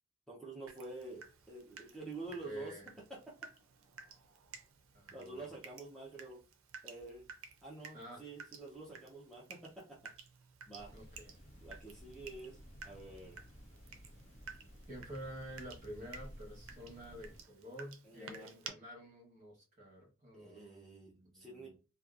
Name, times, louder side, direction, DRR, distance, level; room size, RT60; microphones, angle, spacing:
voice 1, 0.3-2.8 3.1-3.4 5.1-6.4 6.8-7.3 7.6-10.1 10.7-10.9 11.6-12.6 12.8-13.4 18.0-18.5 20.3-21.8, right 3 dB, ahead, -5 dB, 0.5 m, -48 dB
Water tap faucet / Drip, 0.7-18.7, right 6 dB, 70° right, 0.4 m, -54 dB
voice 2, 2.4-2.9 4.9-5.5 7.9-8.2 10.9-11.3 14.9-21.8, equal, 35° right, -2 dB, 1.1 m, -49 dB
sound 1, 10.7-17.4, equal, 30° left, 0.8 m, -55 dB
2.7 x 2.2 x 2.4 m, 0.32 s
head